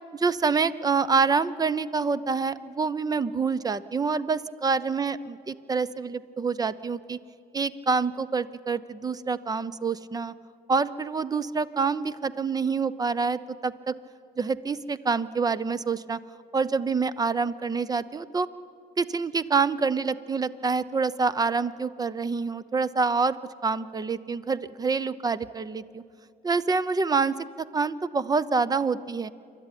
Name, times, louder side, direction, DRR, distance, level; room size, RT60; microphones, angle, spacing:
voice 1, 0.1-7.2 7.5-10.3 10.7-13.9 14.4-16.2 16.5-18.5 19.0-23.4 23.6-26.0 26.4-27.4 27.7-29.3, right 4 dB, 20° right, 16 dB, 0.7 m, -26 dB
27.0 x 12.0 x 9.8 m, 2.4 s
cardioid pair, 110°, 17 cm